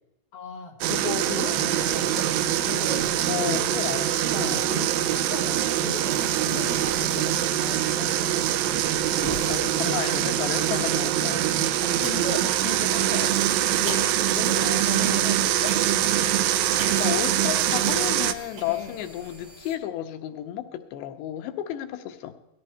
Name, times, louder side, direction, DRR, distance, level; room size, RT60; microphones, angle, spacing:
voice 1, 0.3-2.3 2.6-3.3 4.3-8.4 10.7-11.0 11.6-13.5 13.8-15.8 18.7-19.0, left 6 dB, 40° left, -1 dB, 3.0 m, -37 dB
sound 1, 0.8-18.3, right 12 dB, 80° right, 2.3 m, -24 dB
sound 2, 1.7-19.7, right 1 dB, 30° right, 4.3 m, -44 dB
voice 2, 3.3-4.1 4.4-4.7 9.1-11.5 14.6-15.4 17.0-22.3, left 12 dB, 90° left, 7 dB, 3.2 m, -32 dB
sound 3, 10.5-18.6, right 2 dB, 60° right, 5.9 m, -45 dB
18.0 x 14.0 x 4.4 m, 0.93 s
omnidirectional pair, 4.8 m